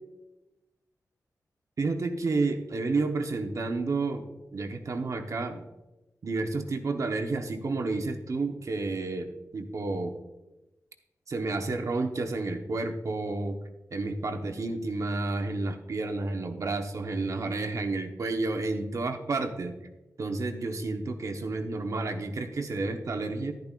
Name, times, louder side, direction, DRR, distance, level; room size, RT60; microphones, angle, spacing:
voice 1, 1.8-4.2 4.5-5.6 6.2-10.1 11.3-13.6 13.9-19.8 20.2-23.5, right 3 dB, 55° right, 5 dB, 1.0 m, -30 dB
11.0 x 10.5 x 2.5 m, 1.0 s
wide cardioid pair, 90°, 6 cm